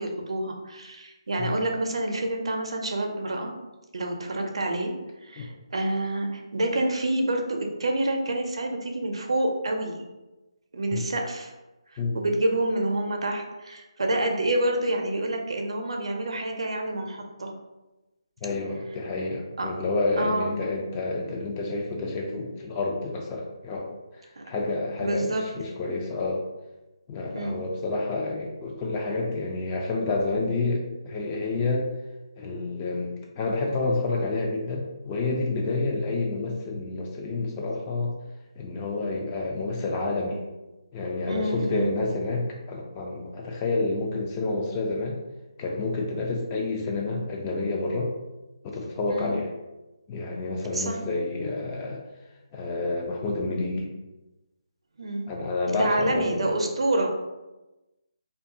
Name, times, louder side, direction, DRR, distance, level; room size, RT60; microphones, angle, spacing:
voice 1, 0.0-3.5 3.9-4.9 5.2-10.0 10.7-11.5 12.1-17.6 19.6-19.7 20.2-20.6 24.4-24.5 25.0-25.4 27.3-27.6 41.2-41.9 49.1-49.4 50.7-51.0 55.0-55.3 55.7-57.1, right 1 dB, 70° right, 2 dB, 0.5 m, -28 dB
voice 2, 18.4-26.4 27.1-31.9 32.4-38.1 38.6-40.4 40.9-45.2 45.6-48.1 48.6-49.5 50.1-52.0 52.5-53.9 55.3-56.6, left 3 dB, 20° left, -1 dB, 0.3 m, -29 dB
2.3 x 2.3 x 2.6 m, 1.1 s
figure-of-eight pair, 155°, 3 cm